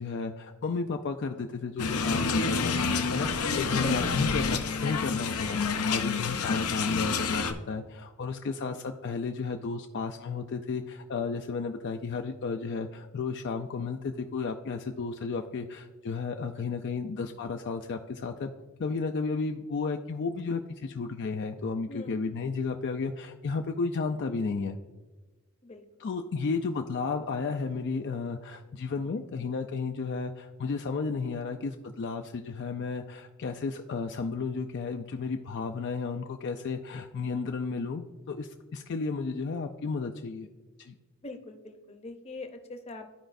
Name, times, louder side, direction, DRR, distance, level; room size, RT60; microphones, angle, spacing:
voice 1, 0.0-2.8 3.1-18.5 18.8-24.8 26.0-40.5 40.8-40.9, left 4 dB, 55° left, 5 dB, 0.4 m, -33 dB
sound 1, 1.8-7.5, left 5 dB, 90° left, 0.7 m, -28 dB
voice 2, 3.8-4.1 21.9-22.2 25.6-25.8 41.2-43.2, left 2 dB, 30° left, 5 dB, 0.7 m, -41 dB
13.5 x 4.9 x 2.6 m, 1.3 s
head